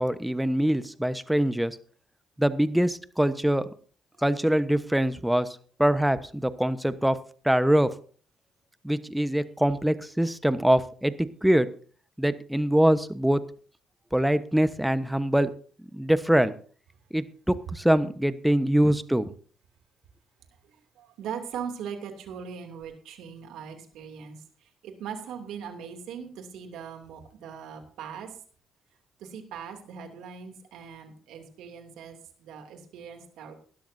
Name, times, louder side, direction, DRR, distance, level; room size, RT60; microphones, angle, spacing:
voice 1, 0.0-1.8 2.4-3.7 4.2-7.2 7.4-7.9 8.8-11.7 12.2-13.4 14.1-15.5 15.8-16.5 17.1-19.3, right 1 dB, 5° right, 13 dB, 1.1 m, -24 dB
voice 2, 20.6-28.4 29.2-33.5, right 7 dB, 75° right, 5 dB, 2.8 m, -40 dB
18.5 x 12.5 x 2.8 m, 0.43 s
supercardioid pair, 55°, 0 cm